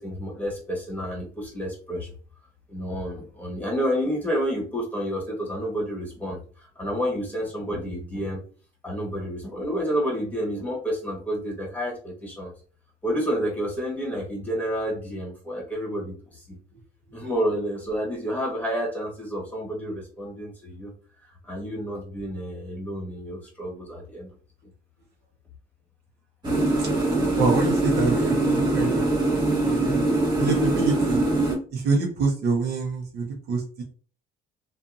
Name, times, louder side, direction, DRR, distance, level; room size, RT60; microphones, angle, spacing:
voice 1, 0.0-2.1 2.7-8.5 8.8-12.5 13.0-16.6 17.1-20.9 21.4-24.3, equal, 10° left, -3 dB, 1.4 m, -30 dB
sound 1, 26.4-31.5, right 2 dB, 25° right, 1.1 m, -23 dB
voice 2, 27.4-29.1 29.6-30.0 30.4-31.2 31.7-33.8, right 4 dB, 70° right, -1 dB, 0.9 m, -26 dB
2.6 x 2.5 x 2.4 m, 0.40 s
cardioid pair, 110°, 17 cm